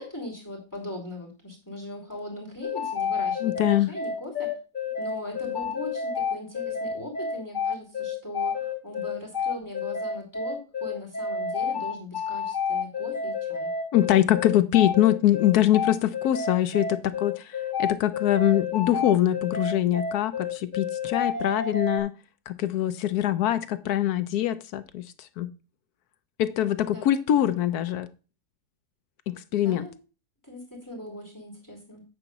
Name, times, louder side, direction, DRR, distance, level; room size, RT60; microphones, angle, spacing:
voice 1, 0.0-4.5 5.0-13.7 26.8-27.3 29.6-29.9 30.4-32.0, left 1 dB, 10° left, 2.7 m, -39 dB
sound 1, 2.6-22.0, left 5 dB, 30° left, 1.4 m, -30 dB
voice 2, 3.4-3.9 13.9-22.1 22.5-25.0 25.4-25.5 26.4-28.1 29.3-29.8, left 12 dB, 75° left, 1.1 m, -23 dB
8.8 x 4.0 x 5.8 m
omnidirectional pair, 1.7 m